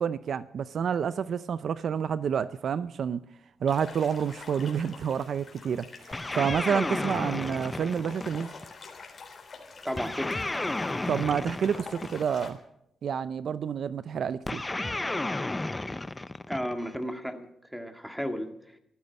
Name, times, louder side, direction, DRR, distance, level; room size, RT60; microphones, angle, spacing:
voice 1, 0.0-3.2 3.6-8.5 11.1-12.6 13.0-14.6, right 7 dB, 65° right, 0.5 m, -29 dB
sound 1, 3.7-12.5, left 4 dB, 45° left, 3.6 m, -47 dB
sound 2, 6.1-8.7 10.0-12.5 14.5-17.0, left 2 dB, 15° left, 0.6 m, -32 dB
voice 2, 6.7-7.0 9.8-10.3 16.5-17.5 17.7-18.5, equal, ahead, 1.9 m, -33 dB
14.0 x 11.5 x 8.3 m
cardioid pair, 95°, 0 cm